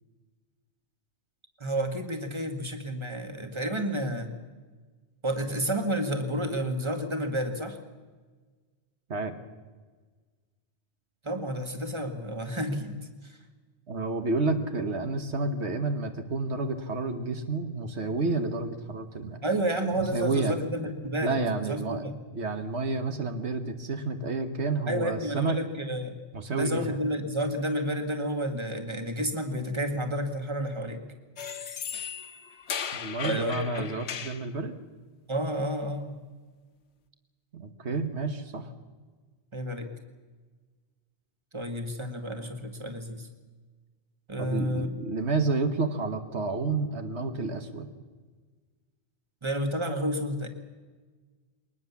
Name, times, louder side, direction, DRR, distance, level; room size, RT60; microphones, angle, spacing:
voice 1, 1.6-4.3 5.2-7.8 11.2-13.0 13.2-13.4 19.4-21.4 21.6-22.1 24.9-26.2 26.5-31.0 33.2-33.9 35.3-36.2 39.5-39.9 41.5-43.3 44.3-44.9 49.4-50.5, right 1 dB, 25° right, 6 dB, 2.0 m, -30 dB
voice 2, 13.9-19.4 20.1-20.6 21.2-22.1 22.3-25.6 26.3-27.0 32.9-34.7 37.5-38.7 44.4-47.9, right 3 dB, 75° right, 7 dB, 1.6 m, -30 dB
sound 1, 31.4-34.5, left 8 dB, 80° left, 1.2 m, -36 dB
22.0 x 19.5 x 7.2 m, 1.4 s
omnidirectional pair, 1.1 m